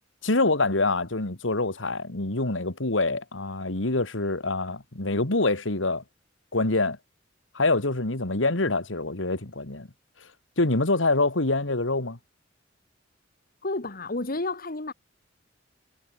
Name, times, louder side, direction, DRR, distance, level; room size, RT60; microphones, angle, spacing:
voice 1, 0.2-6.0 6.5-7.0 7.5-9.9 10.6-12.2, left 2 dB, 85° left, 2.4 m, -25 dB
voice 2, 13.6-14.9, left 2 dB, 50° left, 1.9 m, -31 dB
head